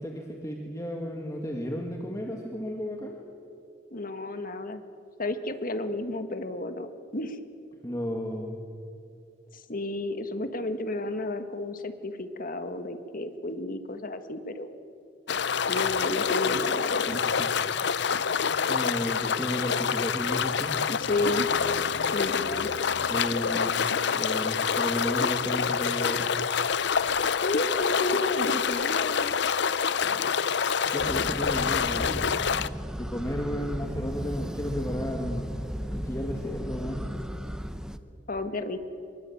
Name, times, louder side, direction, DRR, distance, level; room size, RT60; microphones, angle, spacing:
voice 1, 0.0-3.2 7.8-8.6 17.1-17.5 17.8-18.0 18.5-20.7 22.9-23.8 24.1-26.2 30.0-30.2 30.9-32.3 32.9-37.1, equal, 20° left, 1 dB, 2.1 m, -33 dB
voice 2, 3.9-4.8 5.2-6.9 7.1-7.4 9.5-14.7 15.3-17.2 20.9-21.5 22.1-22.7 27.3-29.3 38.3-38.8, left 2 dB, 50° left, 9 dB, 1.7 m, -32 dB
sound 1, 15.3-32.7, left 6 dB, 65° left, 0.6 m, -27 dB
sound 2, 31.0-38.0, equal, 5° right, 0.9 m, -35 dB
25.0 x 22.5 x 8.8 m, 2.6 s
head